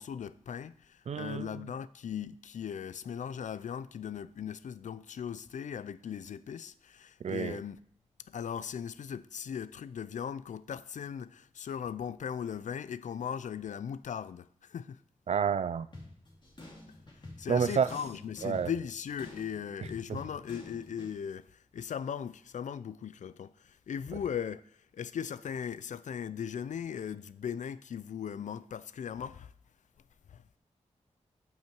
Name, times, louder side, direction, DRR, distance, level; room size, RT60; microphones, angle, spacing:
voice 1, 0.0-7.8 8.3-15.0 17.4-29.5 30.3-30.4, left 8 dB, 75° left, 0.4 m, -38 dB
voice 2, 1.1-1.5 7.2-7.6 15.3-15.9 17.5-17.9 18.4-18.7, right 7 dB, 60° right, 0.4 m, -29 dB
sound 1, 15.9-21.1, left 2 dB, 40° left, 2.6 m, -49 dB
15.0 x 5.7 x 4.6 m
wide cardioid pair, 130°, 13 cm